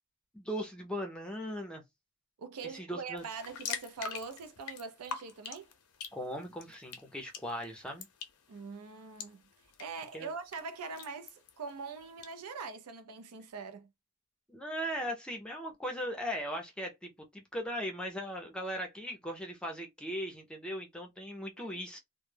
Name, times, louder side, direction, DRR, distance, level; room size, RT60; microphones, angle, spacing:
voice 1, 0.3-1.8 2.6-3.2 6.1-8.1 10.1-10.3 14.5-22.0, equal, 5° left, 0.4 m, -38 dB
voice 2, 2.4-5.7 8.5-9.4 9.8-13.9 21.6-21.8, right 4 dB, 90° right, 0.5 m, -43 dB
sound 1, 3.2-12.3, left 7 dB, 90° left, 0.6 m, -46 dB
2.1 x 2.0 x 3.1 m
head